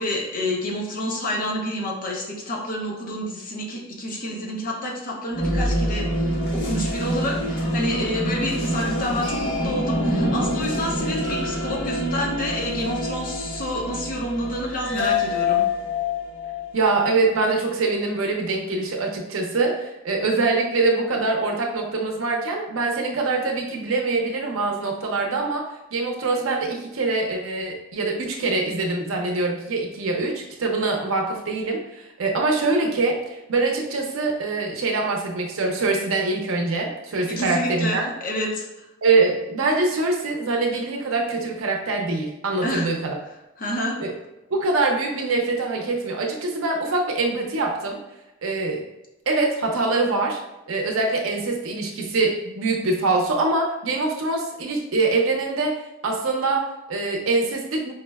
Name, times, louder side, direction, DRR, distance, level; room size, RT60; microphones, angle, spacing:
voice 1, 0.0-15.6 37.3-38.9 42.6-42.9 43.6-44.0, left 1 dB, 45° left, -1 dB, 0.7 m, -28 dB
sound 1, 5.3-17.1, left 1 dB, 60° left, 1.0 m, -26 dB
voice 2, 16.7-25.6 25.9-38.0 39.0-43.1 44.0-44.1 44.5-48.0 48.4-48.8 49.3-50.4 50.7-55.7 56.0-57.9, right 3 dB, 80° right, 1 dB, 0.6 m, -24 dB
4.7 x 2.1 x 2.2 m, 0.93 s
head